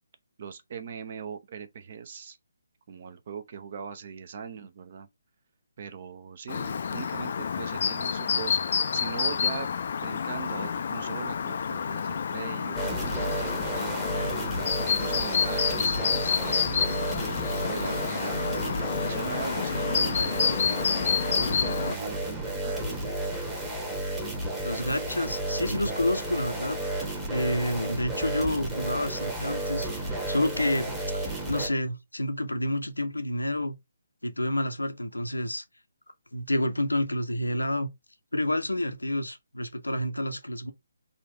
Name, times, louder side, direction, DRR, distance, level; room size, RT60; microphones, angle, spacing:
voice 1, 0.4-2.4 2.9-5.1 5.8-9.7 10.0-17.1 17.7-18.7 19.0-20.8 21.1-22.7, right 6 dB, 40° right, 0.6 m, -40 dB
Chirp tweet, 6.5-22.0, left 6 dB, 45° left, 0.3 m, -29 dB
sound 1, 12.8-31.7, right 1 dB, 10° right, 1.0 m, -32 dB
voice 2, 24.6-33.8 34.2-35.6 36.3-37.9 38.3-40.7, left 1 dB, 80° left, 0.7 m, -29 dB
3.9 x 2.5 x 3.3 m
figure-of-eight pair, 140°, 0 cm